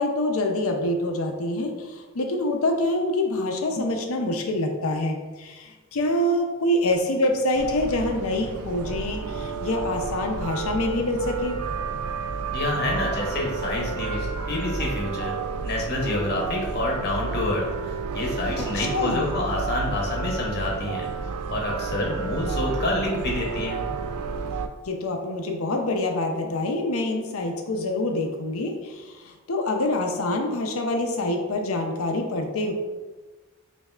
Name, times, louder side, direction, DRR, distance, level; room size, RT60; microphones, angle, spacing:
voice 1, 0.0-11.6 18.6-19.4 24.8-32.7, left 1 dB, 70° left, 3 dB, 0.6 m, -26 dB
sound 1, 7.5-24.7, right 4 dB, 90° right, 0.3 m, -31 dB
voice 2, 12.5-15.3 15.6-21.1 21.5-23.8, left 2 dB, 50° left, -2 dB, 0.9 m, -28 dB
5.4 x 2.6 x 2.4 m, 1.3 s
head